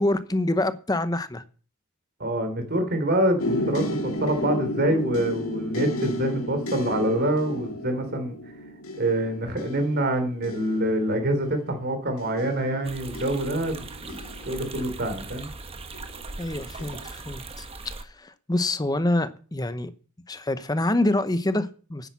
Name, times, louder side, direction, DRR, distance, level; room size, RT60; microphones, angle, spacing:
voice 1, 0.0-1.4 16.4-17.6 18.0-19.9 20.3-22.1, left 1 dB, 20° left, 0.8 m, -26 dB
voice 2, 2.2-8.3 9.0-14.2 14.4-15.5, right 1 dB, 50° right, 3.6 m, -26 dB
sound 1, 3.4-15.3 15.9-16.4 16.8-17.0, left 1 dB, 75° left, 2.3 m, -33 dB
sound 2, 12.8-18.0, right 3 dB, 25° right, 1.3 m, -39 dB
10.0 x 9.1 x 7.0 m
head